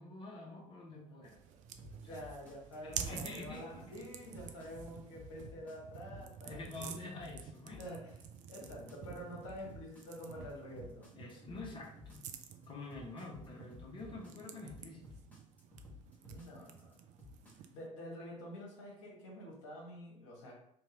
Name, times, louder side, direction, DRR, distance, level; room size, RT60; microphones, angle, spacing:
voice 1, 0.0-1.4 2.0-2.2 2.8-4.1 6.4-7.8 11.1-12.3 12.7-15.1, left 2 dB, 30° left, -2 dB, 1.0 m, -47 dB
sound 1, 1.2-17.9, right 8 dB, 45° right, 0.4 m, -50 dB
sound 2, 1.8-17.6, left 3 dB, 10° left, 1.3 m, -54 dB
voice 2, 1.9-7.0 7.8-8.2 8.5-11.1 16.3-17.1 17.5-20.5, equal, 65° left, -2 dB, 1.1 m, -48 dB
3.0 x 2.9 x 3.6 m, 0.71 s
figure-of-eight pair, 60°, 17 cm